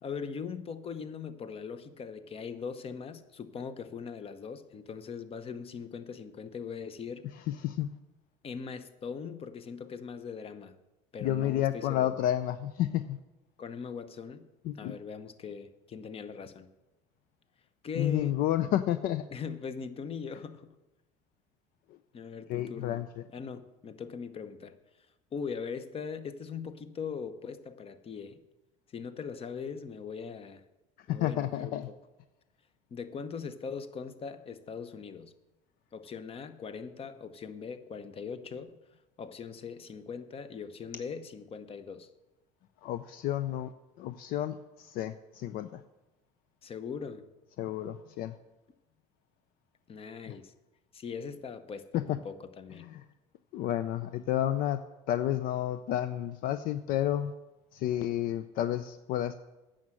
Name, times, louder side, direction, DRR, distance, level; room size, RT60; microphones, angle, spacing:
voice 1, 0.0-7.3 8.4-10.8 11.1-12.1 13.6-14.4 14.8-16.7 17.8-18.4 19.3-20.7 22.1-23.0 23.3-24.8 25.3-28.4 28.9-30.6 31.1-32.0 32.9-35.3 35.9-38.8 39.2-42.1 46.6-47.3 49.9-50.5 50.9-52.8, left 6 dB, 35° left, 12 dB, 0.9 m, -40 dB
voice 2, 7.5-8.0 11.2-13.2 14.6-15.0 18.0-19.3 22.5-23.1 31.1-31.9 42.8-43.7 44.0-45.8 47.6-48.4 50.3-50.4 51.9-52.2 52.8-53.0 53.5-54.8 55.1-57.3 57.7-59.3, left 12 dB, 60° left, 12 dB, 0.5 m, -31 dB
9.3 x 6.5 x 7.7 m, 1.0 s
supercardioid pair, 85°, 17 cm